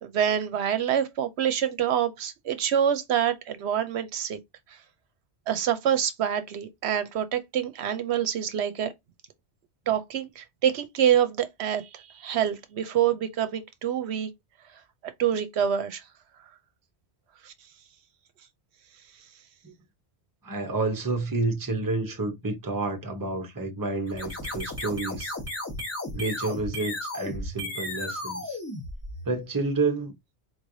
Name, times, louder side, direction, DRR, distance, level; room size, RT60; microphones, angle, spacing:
voice 1, 0.0-4.4 5.5-8.9 9.9-14.3 15.2-16.0 17.4-17.5, right 9 dB, 75° right, 0.8 m, -26 dB
voice 2, 20.4-25.3 26.1-28.6 29.2-30.2, right 3 dB, 20° right, 0.7 m, -29 dB
sound 1, 24.1-29.5, left 1 dB, 15° left, 1.1 m, -34 dB
4.0 x 3.2 x 2.6 m
omnidirectional pair, 1.1 m